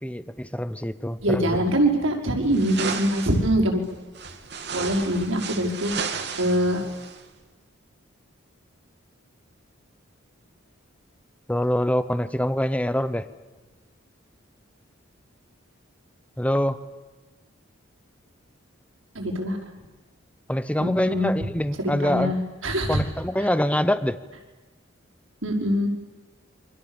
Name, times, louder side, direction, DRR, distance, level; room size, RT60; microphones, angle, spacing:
voice 1, 0.0-1.6 11.5-13.2 16.4-16.8 20.5-22.4 22.9-24.2, equal, 5° left, 14 dB, 0.9 m, -25 dB
voice 2, 1.2-3.8 4.7-5.9 6.4-6.8 19.2-19.6 20.8-21.3 21.8-22.4 22.6-23.0 25.4-25.9, equal, 80° right, 1 dB, 5.6 m, -23 dB
sound 1, 2.5-3.4 4.1-7.2, right 5 dB, 55° right, 2.6 m, -33 dB
28.5 x 25.5 x 7.3 m, 1.3 s
head